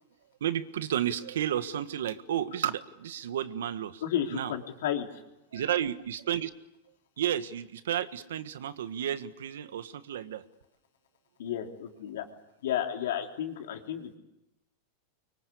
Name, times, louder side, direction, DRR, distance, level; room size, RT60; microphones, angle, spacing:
voice 1, 0.4-4.0 4.3-4.5 5.5-6.5 7.2-10.4, right 10 dB, 90° right, 12 dB, 1.5 m, -32 dB
voice 2, 4.0-5.1 11.4-12.2 12.6-14.1, left 10 dB, 80° left, 2 dB, 3.6 m, -32 dB
24.0 x 24.0 x 8.5 m, 0.89 s
supercardioid pair, 140°, 0 cm